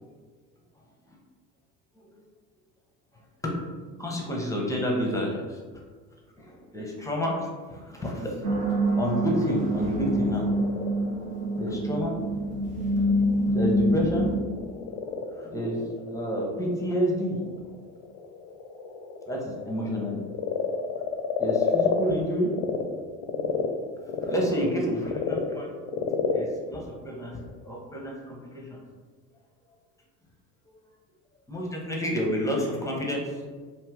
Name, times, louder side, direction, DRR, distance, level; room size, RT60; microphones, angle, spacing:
voice 1, 4.0-5.6 6.4-8.5 9.0-10.5 11.6-12.1 13.0-13.1 13.5-14.3 15.4-17.4 19.3-20.2 21.4-22.5 24.2-25.7 26.3-28.8 31.5-33.3, equal, 5° left, -2 dB, 0.6 m, -29 dB
sound 1, 8.4-14.4, right 1 dB, 60° right, 0.8 m, -26 dB
Frog, 10.0-22.8 23.2-27.8, left 7 dB, 50° left, 0.5 m, -32 dB
2.6 x 2.4 x 3.4 m, 1.5 s
hypercardioid pair, 65°, 46 cm